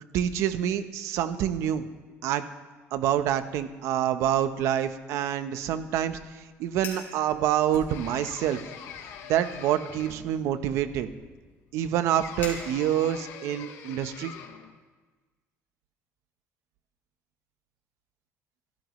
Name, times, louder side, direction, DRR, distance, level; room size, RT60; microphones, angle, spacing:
voice 1, 0.0-1.8 2.2-2.4 2.9-6.2 6.6-8.6 9.3-11.1 11.7-14.3, right 10 dB, 70° right, 10 dB, 1.0 m, -27 dB
Fire, 6.7-7.1 7.7-8.5 8.8-9.2 9.9-13.2, left 4 dB, 40° left, 5.3 m, -44 dB
sound 1, 7.9-10.4 12.1-14.7, left 8 dB, 65° left, 1.3 m, -44 dB
28.5 x 14.5 x 3.2 m, 1.3 s
cardioid pair, 165°, 5 cm